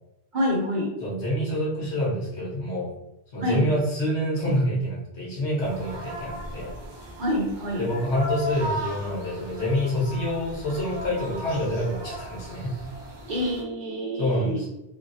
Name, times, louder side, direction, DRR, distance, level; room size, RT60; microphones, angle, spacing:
voice 1, 0.3-0.9 3.4-3.7 7.2-7.9 13.3-14.6, left 1 dB, 50° right, -3 dB, 0.8 m, -27 dB
voice 2, 1.0-2.9 3.3-6.7 7.8-12.7 14.2-14.7, equal, 80° left, -5 dB, 1.3 m, -27 dB
sound 1, 5.6-13.6, equal, 35° right, 0.4 m, -36 dB
3.6 x 2.0 x 2.6 m, 0.91 s
omnidirectional pair, 1.1 m